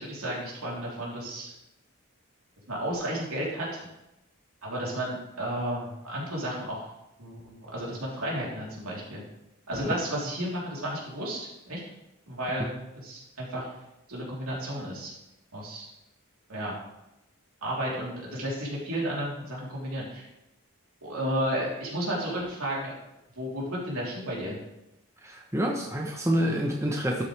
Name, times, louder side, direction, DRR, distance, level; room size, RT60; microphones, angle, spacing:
voice 1, 0.0-1.5 2.7-3.9 4.6-6.8 7.2-9.2 9.7-11.8 12.3-13.7 14.1-15.1 15.5-15.9 16.5-16.7 17.6-20.2 21.0-22.9 23.3-24.6, right 1 dB, 80° right, -5 dB, 3.4 m, -32 dB
voice 2, 25.2-27.2, equal, 15° right, 0 dB, 0.9 m, -27 dB
12.0 x 7.4 x 3.3 m, 0.90 s
head